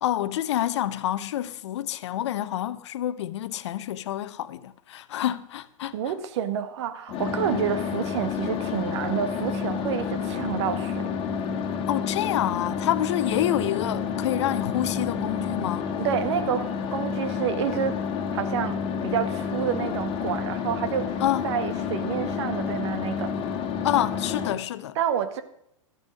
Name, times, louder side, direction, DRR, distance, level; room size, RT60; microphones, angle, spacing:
voice 1, 0.0-6.0 11.9-15.9 21.2-21.5 23.8-25.0, left 12 dB, 55° left, 0.8 m, -27 dB
voice 2, 5.9-11.1 16.0-18.0 18.3-21.2 21.4-23.4 24.9-25.4, right 9 dB, 55° right, 1.4 m, -29 dB
sound 1, 7.1-24.5, left 6 dB, 30° left, 1.8 m, -29 dB
13.5 x 9.5 x 6.3 m
figure-of-eight pair, 100°, 17 cm